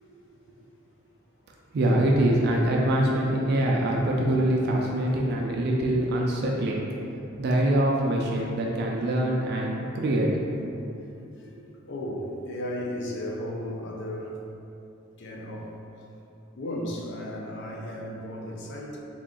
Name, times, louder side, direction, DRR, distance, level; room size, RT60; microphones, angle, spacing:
voice 1, 1.7-6.8 7.4-10.3 10.7-10.8, right 1 dB, 50° right, -1 dB, 0.3 m, -24 dB
voice 2, 11.9-14.4 15.2-15.7 16.6-19.0, left 1 dB, 60° left, -1 dB, 0.5 m, -35 dB
3.4 x 2.4 x 3.7 m, 2.8 s
head